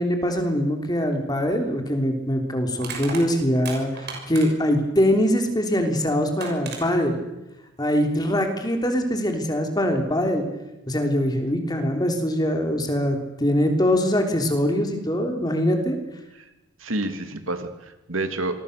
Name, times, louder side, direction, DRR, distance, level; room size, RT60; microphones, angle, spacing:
voice 1, 0.0-7.2 7.8-10.5 10.9-16.0, equal, 20° left, 4 dB, 3.4 m, -23 dB
Crushing, 2.8-4.7 5.9-6.0 6.4-6.8, right 5 dB, 50° right, 6.2 m, -35 dB
voice 2, 16.8-18.5, right 2 dB, 85° right, 8 dB, 2.7 m, -29 dB
27.0 x 21.5 x 6.8 m, 1.0 s
head